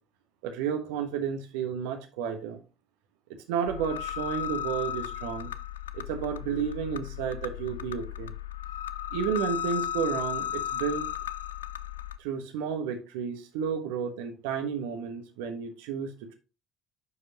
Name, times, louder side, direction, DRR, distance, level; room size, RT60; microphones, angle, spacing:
voice 1, 0.4-2.6 3.5-5.5 5.9-8.3 9.1-11.1 12.2-16.3, right 7 dB, 65° right, 1.2 m, -32 dB
sound 1, 3.7-12.2, left 10 dB, 75° left, 0.3 m, -35 dB
9.7 x 4.8 x 2.9 m
figure-of-eight pair, 55°, 0 cm